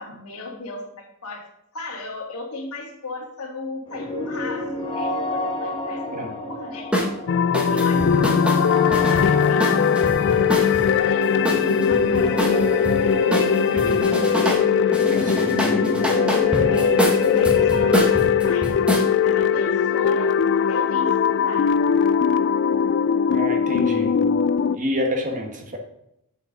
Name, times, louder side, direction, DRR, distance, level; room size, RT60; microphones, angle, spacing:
voice 1, 0.0-1.5 1.7-6.9 7.5-8.4 9.1-12.3 16.7-18.7 19.2-20.4 20.7-21.7, left 2 dB, 75° left, -2 dB, 2.0 m, -36 dB
sound 1, 3.9-21.5, equal, 25° left, 1.5 m, -30 dB
sound 2, 6.9-7.1 7.5-10.9 11.5-13.0 13.3-14.6 14.9-19.1, equal, 5° right, 1.2 m, -25 dB
sound 3, 7.3-24.8, left 7 dB, 55° left, 0.3 m, -20 dB
voice 2, 13.7-14.1 14.9-16.0 23.3-24.1 24.7-25.8, equal, 35° right, 3 dB, 1.4 m, -29 dB
7.2 x 6.9 x 3.9 m, 0.78 s
head